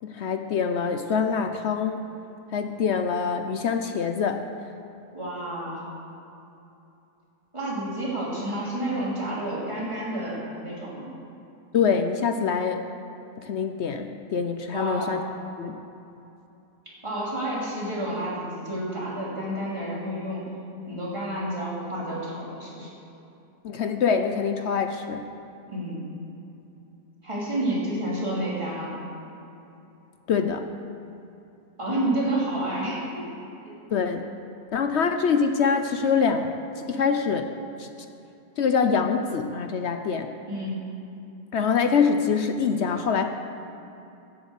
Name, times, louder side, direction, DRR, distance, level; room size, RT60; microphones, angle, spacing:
voice 1, 0.0-2.0 2.5-4.4 11.7-12.8 13.4-15.2 15.6-15.8 23.6-25.2 30.3-30.7 33.9-34.3 34.7-36.5 36.8-37.5 37.8-37.9 38.6-40.3 41.5-43.2, left 6 dB, 60° left, 7 dB, 0.7 m, -24 dB
voice 2, 5.1-5.8 7.5-11.1 14.7-15.2 17.0-20.4 20.9-22.9 25.7-26.0 27.2-28.9 31.8-33.3 40.4-40.8, right 1 dB, 20° right, -7 dB, 3.1 m, -30 dB
11.0 x 7.3 x 8.0 m, 2.8 s
omnidirectional pair, 1.7 m